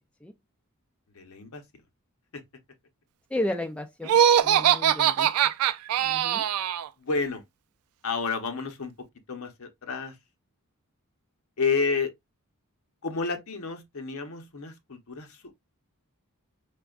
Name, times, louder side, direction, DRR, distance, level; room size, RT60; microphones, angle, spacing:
voice 1, 1.1-1.6 2.3-2.4 7.0-7.4 8.0-8.9 9.3-10.2 11.6-12.1 13.0-15.5, left 4 dB, 70° left, 0.8 m, -30 dB
voice 2, 3.3-5.5 6.0-6.5, left 1 dB, 5° left, 0.3 m, -33 dB
Laughter, 4.0-6.9, right 9 dB, 80° right, 0.3 m, -22 dB
5.0 x 2.3 x 2.3 m
head